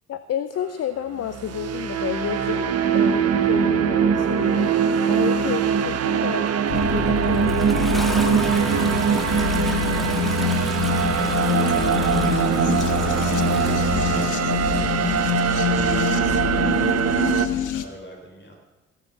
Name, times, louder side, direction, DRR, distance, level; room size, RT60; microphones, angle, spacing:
voice 1, 0.1-4.7 5.1-6.5 6.9-8.5 11.6-12.2, left 9 dB, 55° left, 12 dB, 0.7 m, -31 dB
sound 1, 1.2-17.5, right 8 dB, 55° right, 1.0 m, -22 dB
Toilet flush, 6.5-14.9 15.9-16.0, equal, ahead, 1.8 m, -34 dB
sound 2, 6.7-17.8, left 8 dB, 85° left, 1.1 m, -26 dB
voice 2, 8.4-9.1 9.5-10.7 11.8-15.3 16.2-18.5, equal, 35° left, 1 dB, 3.9 m, -41 dB
16.0 x 7.3 x 6.8 m, 1.2 s
cardioid pair, 90°, 30 cm